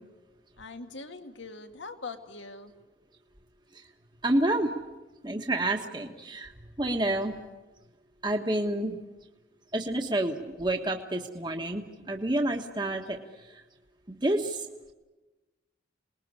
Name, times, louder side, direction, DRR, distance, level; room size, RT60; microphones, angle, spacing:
voice 1, 0.6-2.7, left 3 dB, 80° left, 6 dB, 2.1 m, -42 dB
voice 2, 4.2-4.7 5.2-6.5 6.8-7.3 8.2-9.0 9.7-13.2 14.1-14.7, right 1 dB, 25° right, 3 dB, 1.4 m, -29 dB
27.5 x 20.5 x 9.8 m, 1.2 s
head